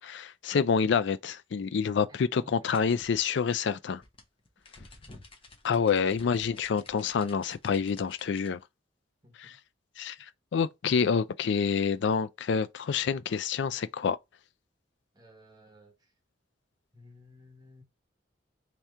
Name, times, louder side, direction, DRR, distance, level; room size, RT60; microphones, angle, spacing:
voice 1, 0.0-4.0 5.6-8.6 9.3-9.6 10.0-14.2, left 6 dB, 70° left, 0.4 m, -28 dB
voice 2, 2.4-2.8 6.2-6.5 9.2-9.6 15.1-16.1 16.9-17.8, left 1 dB, 20° right, 1.0 m, -56 dB
sound 1, 2.7-8.5, left 2 dB, 30° left, 0.9 m, -53 dB
3.3 x 2.9 x 3.6 m
head